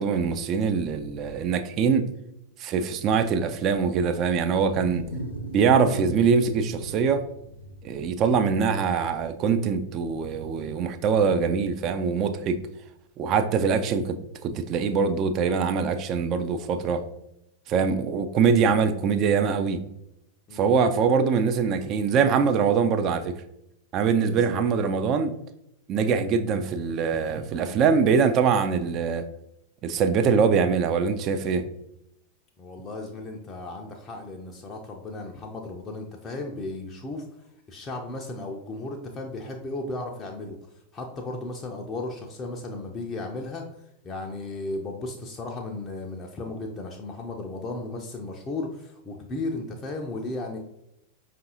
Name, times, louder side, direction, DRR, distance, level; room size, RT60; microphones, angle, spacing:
voice 1, 0.0-2.1 2.6-5.0 5.5-7.2 7.8-12.6 13.2-17.1 17.7-19.8 20.5-23.4 23.9-25.4 25.9-29.3 29.8-31.7, right 6 dB, 35° right, 0.4 m, -23 dB
Wild animals, 4.1-8.7, right 1 dB, 75° left, 0.6 m, -38 dB
voice 2, 24.2-25.0 32.6-37.2 37.7-40.6 40.9-43.7 44.0-50.6, left 2 dB, 25° left, 0.5 m, -35 dB
5.1 x 2.5 x 2.8 m
figure-of-eight pair, 90°, 0 cm